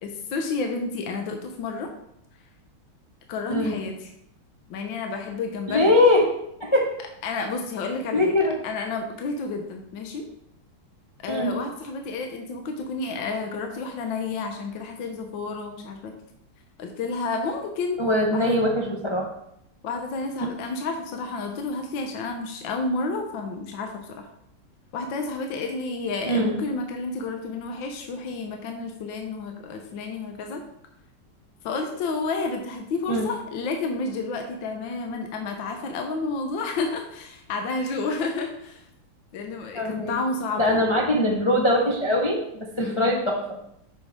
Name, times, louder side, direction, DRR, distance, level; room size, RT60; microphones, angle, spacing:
voice 1, 0.0-1.9 3.3-4.1 4.7-5.9 7.2-8.3 8.6-10.3 11.2-16.1 16.8-18.0 18.3-18.6 19.8-24.3 24.9-30.6 31.6-38.9 39.3-40.9 42.8-43.1, left 3 dB, 70° left, 4 dB, 1.5 m, -30 dB
voice 2, 5.7-6.3 6.6-6.9 8.1-8.5 11.3-11.6 18.0-19.3 20.4-20.5 26.3-26.6 33.1-33.3 39.7-40.1 40.6-43.6, left 1 dB, 45° left, -2 dB, 0.4 m, -22 dB
8.5 x 6.3 x 3.6 m, 0.76 s
omnidirectional pair, 2.3 m